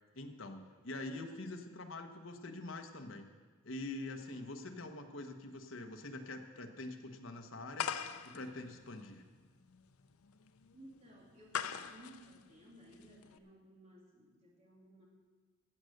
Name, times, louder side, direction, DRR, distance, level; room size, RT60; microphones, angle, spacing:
voice 1, 0.1-3.3 3.6-7.9 8.2-9.2, left 2 dB, 65° left, 4 dB, 1.1 m, -45 dB
sound 1, 7.8-13.4, left 8 dB, 90° left, 0.6 m, -43 dB
voice 2, 10.7-15.0, right 1 dB, 30° right, -3 dB, 2.7 m, -58 dB
15.0 x 7.7 x 6.6 m, 1.4 s
head